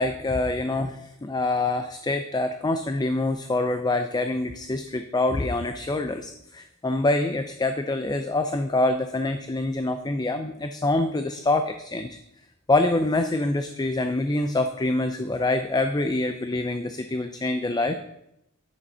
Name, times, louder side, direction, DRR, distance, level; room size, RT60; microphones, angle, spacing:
voice 1, 0.0-12.2 12.7-17.9, left 2 dB, 20° left, 8 dB, 0.5 m, -25 dB
10.5 x 6.9 x 5.5 m, 0.81 s
head